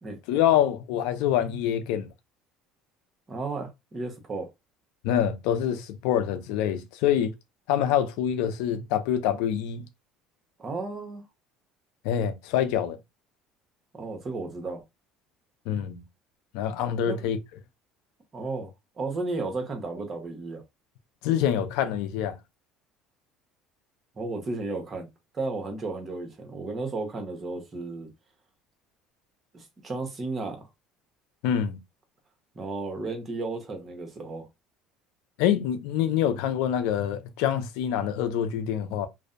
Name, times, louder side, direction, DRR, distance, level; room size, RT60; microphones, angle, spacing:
voice 1, 0.3-2.1 5.0-7.3 7.7-9.8 12.0-13.0 15.7-16.0 16.5-17.4 21.2-22.4 31.4-31.8 35.4-39.1, left 10 dB, 80° left, 0.4 m, -25 dB
voice 2, 3.3-4.5 10.6-11.2 13.9-14.8 17.1-17.2 18.3-18.7 19.0-20.6 24.2-25.1 25.3-28.1 29.5-30.7 32.5-34.5, right 3 dB, 30° right, 1.0 m, -33 dB
2.5 x 2.1 x 2.5 m
supercardioid pair, 105°, 0 cm